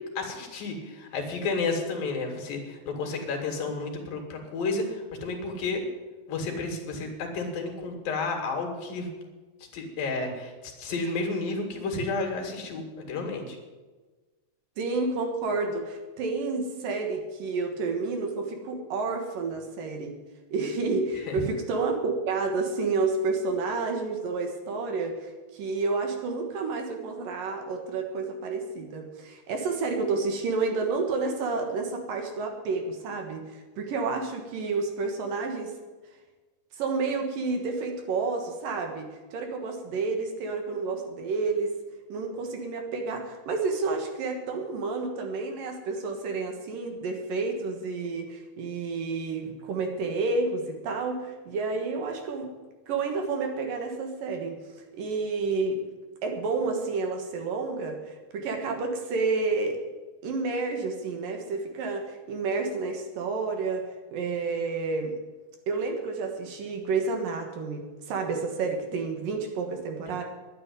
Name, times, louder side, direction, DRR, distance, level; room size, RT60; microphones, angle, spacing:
voice 1, 0.0-5.8 6.3-9.1 9.7-13.6 21.2-21.4, left 3 dB, 70° left, 3 dB, 3.9 m, -31 dB
voice 2, 14.8-20.2 20.5-35.8 36.8-41.8 42.1-52.5 52.9-54.6 54.9-55.8 56.2-59.8 60.2-65.2 65.7-70.2, right 4 dB, 70° right, 4 dB, 3.0 m, -30 dB
11.0 x 9.8 x 9.6 m, 1.3 s
omnidirectional pair, 4.4 m